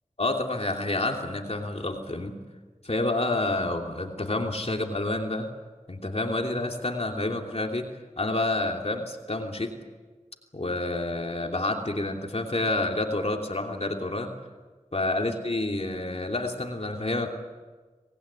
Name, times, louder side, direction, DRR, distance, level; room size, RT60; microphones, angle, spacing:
voice 1, 0.2-2.3 2.8-5.5 5.9-7.9 8.2-9.7 10.5-14.3 14.9-17.3, left 2 dB, 55° left, 2 dB, 2.9 m, -28 dB
26.0 x 20.0 x 10.0 m, 1.4 s
wide cardioid pair, 45°, 13 cm